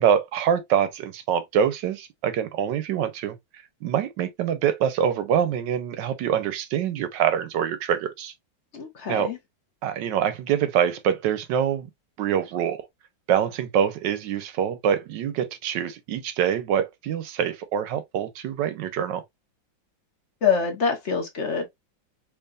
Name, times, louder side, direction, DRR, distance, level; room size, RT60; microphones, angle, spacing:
voice 1, 0.0-3.4 3.8-8.3 9.1-9.3 9.8-11.9 12.2-12.9 13.3-19.2, right 9 dB, 75° right, 1.3 m, -25 dB
voice 2, 8.7-9.4 20.4-21.7, left 6 dB, 50° left, 0.9 m, -25 dB
4.6 x 2.9 x 2.3 m
omnidirectional pair, 2.1 m